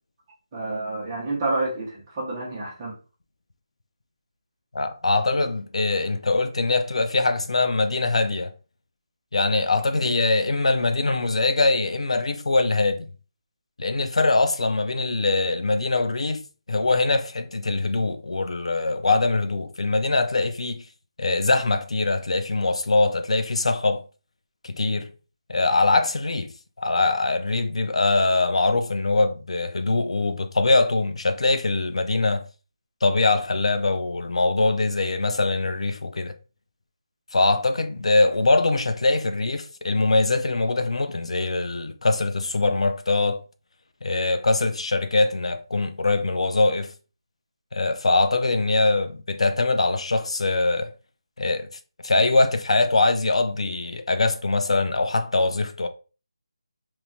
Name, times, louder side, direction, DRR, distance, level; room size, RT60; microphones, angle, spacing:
voice 1, 0.5-3.0 9.8-10.1, right 2 dB, 15° right, 0.6 m, -29 dB
voice 2, 4.7-8.5 9.3-13.1 13.8-16.4 16.7-20.8 21.2-24.0 24.6-25.1 25.5-26.5 26.8-32.5 33.0-36.3 37.3-43.4 44.0-46.9 47.7-50.9 51.4-51.7 52.0-55.9, left 3 dB, 80° left, 0.4 m, -22 dB
3.0 x 2.1 x 2.5 m
figure-of-eight pair, 175°, 3 cm